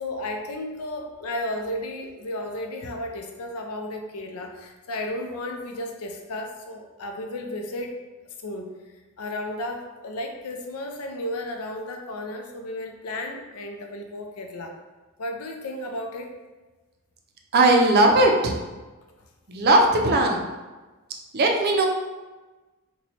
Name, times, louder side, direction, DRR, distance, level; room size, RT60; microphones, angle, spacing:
voice 1, 0.0-8.0 8.2-8.7 9.2-14.7 15.2-16.3, left 1 dB, 85° left, 3 dB, 0.5 m, -33 dB
voice 2, 17.5-18.6 19.5-20.4 21.3-21.9, right 2 dB, 45° right, 2 dB, 0.5 m, -18 dB
3.0 x 2.2 x 4.1 m, 1.2 s
head